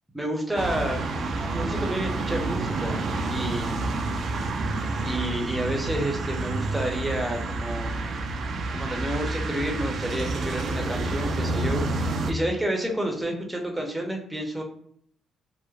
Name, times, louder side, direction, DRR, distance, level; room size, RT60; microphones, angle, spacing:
voice 1, 0.1-1.0 1.5-3.8 4.6-4.7 5.0-8.0 8.7-14.6, right 1 dB, 10° right, 2 dB, 0.6 m, -30 dB
sound 1, 0.5-12.3, right 2 dB, 55° right, 0.3 m, -29 dB
2.9 x 2.1 x 2.4 m, 0.66 s
cardioid pair, 90°, 0 cm